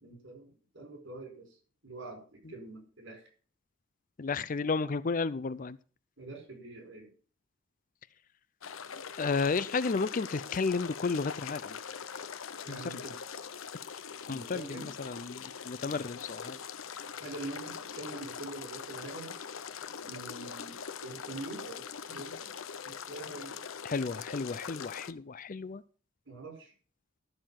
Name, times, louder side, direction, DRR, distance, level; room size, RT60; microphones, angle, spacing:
voice 1, 0.0-1.5 1.8-3.2 6.2-7.1 12.6-13.2 14.3-14.9 15.9-16.0 17.2-19.3 20.0-22.5 22.8-23.6 26.3-26.7, right 2 dB, 60° right, 4 dB, 5.1 m, -45 dB
voice 2, 4.2-5.8 9.2-11.8 12.7-13.0 14.3-16.6 23.8-25.8, left 4 dB, 40° left, 17 dB, 0.5 m, -32 dB
sound 1, 8.6-25.1, left 7 dB, 85° left, 0.7 m, -42 dB
12.5 x 6.7 x 5.8 m, 0.40 s
head